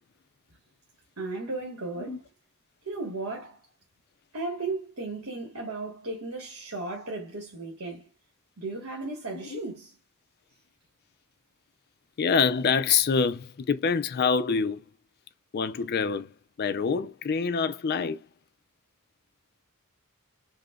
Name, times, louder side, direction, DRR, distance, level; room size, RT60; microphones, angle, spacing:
voice 1, 1.2-2.2 2.8-3.6 4.3-8.1 8.6-9.9, right 3 dB, 75° right, 1.4 m, -35 dB
voice 2, 12.2-14.8 15.5-16.3 16.6-18.2, left 5 dB, 50° left, 0.4 m, -25 dB
4.9 x 2.1 x 2.3 m
head